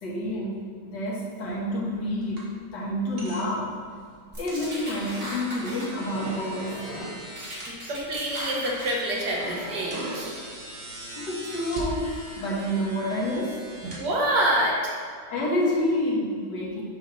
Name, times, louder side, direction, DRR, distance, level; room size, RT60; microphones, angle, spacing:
voice 1, 0.0-2.5 2.7-3.7 4.4-6.7 11.2-13.6 15.3-16.8, left 1 dB, 85° left, -5 dB, 1.9 m, -28 dB
sound 1, 1.4-14.7, right 1 dB, 40° right, 1.3 m, -42 dB
sound 2, 4.3-5.8 6.1-7.1 7.4-8.9 9.3-10.2, right 1 dB, 20° right, 1.1 m, -37 dB
voice 2, 7.9-10.3 13.8-14.9, right 1 dB, 75° right, -3 dB, 1.7 m, -26 dB
6.3 x 6.0 x 3.1 m, 2.1 s
omnidirectional pair, 1.8 m